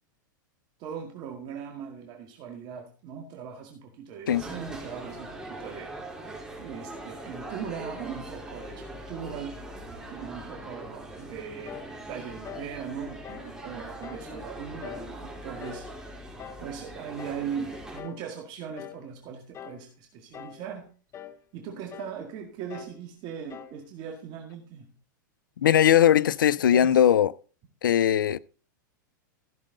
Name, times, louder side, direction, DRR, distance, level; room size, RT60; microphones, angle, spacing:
voice 1, 0.8-5.9 6.6-9.6 10.1-11.8 12.1-15.9 16.6-20.9 21.5-24.9 26.7-27.1, right 7 dB, 45° right, 2.0 m, -39 dB
sound 1, 4.3-18.0, right 1 dB, 5° right, 3.8 m, -41 dB
sound 2, 11.7-12.0 12.4-12.7 13.2-13.5 14.0-14.3 14.8-15.1 15.6-15.9 16.4-16.7 17.2-17.5 18.0-18.3 18.8-19.1 19.5-19.9 20.3-20.7 21.1-21.4 21.9-22.2 22.7-23.0 23.5-23.8, left 9 dB, 25° left, 0.7 m, -43 dB
voice 2, 25.6-27.3 27.8-28.4, left 10 dB, 85° left, 0.4 m, -20 dB
15.0 x 6.4 x 3.9 m
hypercardioid pair, 115°, 11 cm